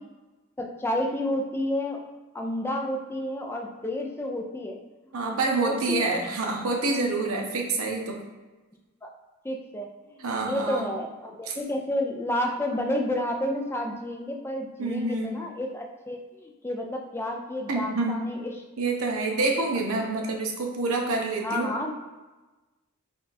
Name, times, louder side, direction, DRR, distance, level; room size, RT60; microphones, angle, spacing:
voice 1, 0.6-2.0 2.3-4.8 5.2-6.2 9.0-9.1 9.4-18.5 19.2-19.4 21.4-21.9, left 1 dB, 10° left, 2 dB, 0.3 m, -31 dB
voice 2, 5.1-8.2 10.2-10.9 11.5-11.6 14.8-15.4 17.7-18.2 18.8-21.7, right 3 dB, 70° right, 0 dB, 0.8 m, -27 dB
4.3 x 2.3 x 4.1 m, 1.2 s
head